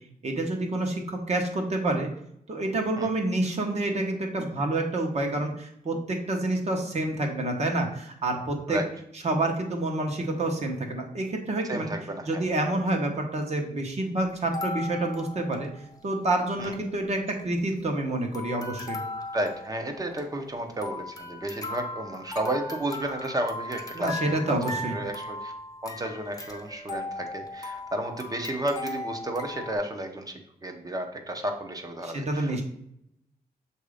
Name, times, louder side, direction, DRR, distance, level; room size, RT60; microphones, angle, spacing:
voice 1, 0.2-2.1 2.5-8.8 9.2-11.9 12.2-15.7 16.0-19.0 23.9-25.0 32.0-32.6, right 2 dB, 45° right, 2 dB, 1.1 m, -28 dB
voice 2, 11.6-12.4 16.6-16.8 19.3-24.6 24.9-25.5 25.8-32.5, right 1 dB, 25° right, 4 dB, 0.8 m, -32 dB
sound 1, 14.3-16.0 16.3-16.4 16.6-16.8 17.3-18.1 18.3-29.8, left 2 dB, 25° left, 0.8 m, -38 dB
7.2 x 2.7 x 4.9 m, 0.75 s
wide cardioid pair, 160°, 16 cm